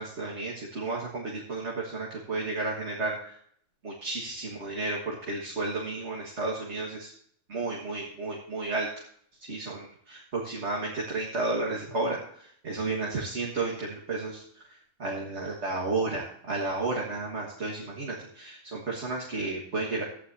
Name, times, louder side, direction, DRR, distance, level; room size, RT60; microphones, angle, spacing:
voice 1, 0.0-3.4 3.8-7.1 7.5-8.9 9.4-14.4 14.7-20.0, right 3 dB, 60° right, -3 dB, 1.9 m, -32 dB
15.0 x 9.7 x 2.7 m, 0.64 s
omnidirectional pair, 1.4 m